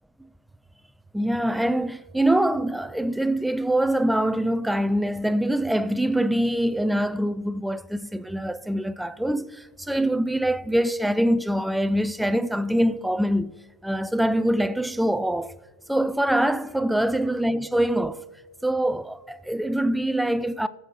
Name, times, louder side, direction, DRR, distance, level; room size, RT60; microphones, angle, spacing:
voice 1, 1.1-15.5 15.9-18.2 18.6-20.7, right 1 dB, 5° right, 0.3 m, -24 dB
20.5 x 6.9 x 3.0 m
figure-of-eight pair, 90°, 0 cm